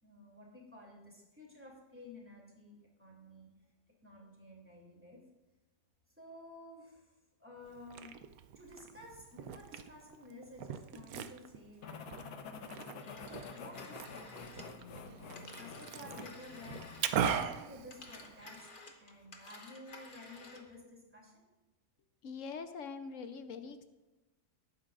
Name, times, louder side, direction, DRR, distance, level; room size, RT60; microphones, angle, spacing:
voice 1, 0.0-3.5 4.0-5.2 6.2-7.0 7.4-8.1 8.5-12.5 13.0-16.8 17.1-18.7 19.0-21.4, left 1 dB, 5° right, -3 dB, 2.8 m, -53 dB
Liquid, 7.6-18.6, right 8 dB, 70° right, 1.0 m, -41 dB
sound 1, 11.8-17.6, left 5 dB, 75° left, 1.4 m, -49 dB
Telephone, 12.8-17.5 17.8-20.7, left 2 dB, 35° left, 1.3 m, -53 dB
voice 2, 22.2-23.8, left 5 dB, 60° left, 9 dB, 1.1 m, -43 dB
18.5 x 9.4 x 2.5 m, 1.1 s
omnidirectional pair, 1.7 m